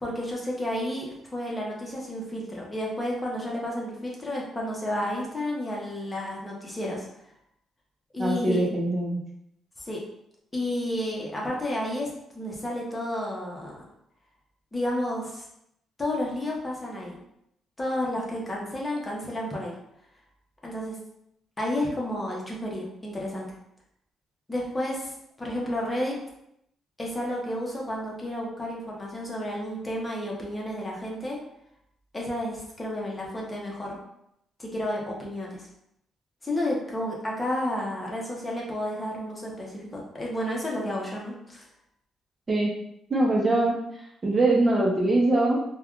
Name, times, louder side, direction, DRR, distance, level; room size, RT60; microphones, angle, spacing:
voice 1, 0.0-7.1 8.1-8.7 9.9-10.0 10.5-12.1 12.3-13.8 14.7-15.4 16.0-17.2 17.8-19.7 20.6-21.0 21.6-23.5 24.5-25.1 25.4-26.2 27.0-31.4 32.1-34.0 34.6-35.7 36.4-41.6, left 1 dB, 20° left, -3 dB, 0.8 m, -31 dB
voice 2, 8.2-9.2 42.5-42.7 43.1-43.7 44.2-45.6, right 2 dB, 30° right, -3 dB, 0.7 m, -22 dB
3.4 x 2.3 x 2.4 m, 0.78 s
cardioid pair, 90°, 0 cm